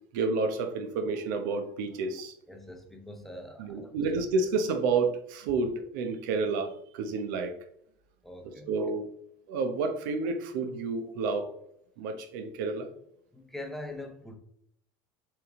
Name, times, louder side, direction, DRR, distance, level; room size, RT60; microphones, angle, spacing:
voice 1, 0.1-2.3 3.6-7.6 8.7-9.1 9.5-11.5 12.0-12.9, right 4 dB, 90° right, 7 dB, 1.0 m, -30 dB
voice 2, 2.5-3.9 8.2-8.7 13.3-14.4, left 1 dB, ahead, 3 dB, 0.7 m, -43 dB
7.4 x 3.5 x 3.7 m, 0.69 s
cardioid pair, 170°, 10 cm